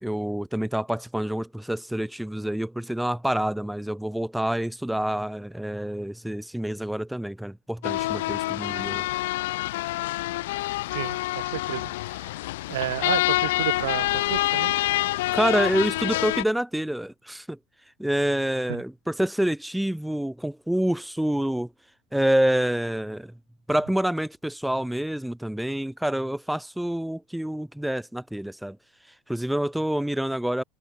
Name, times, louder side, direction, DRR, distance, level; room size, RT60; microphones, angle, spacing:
voice 1, 0.0-9.1 15.3-17.6 18.0-21.7 22.1-23.3 23.7-28.8 29.3-30.6, right 1 dB, ahead, 1.8 m, -27 dB
sound 1, 7.8-16.4, left 18 dB, 75° left, 1.8 m, -27 dB
voice 2, 10.9-12.4 12.7-15.1, right 14 dB, 85° right, 2.4 m, -32 dB
supercardioid pair, 110°, 0 cm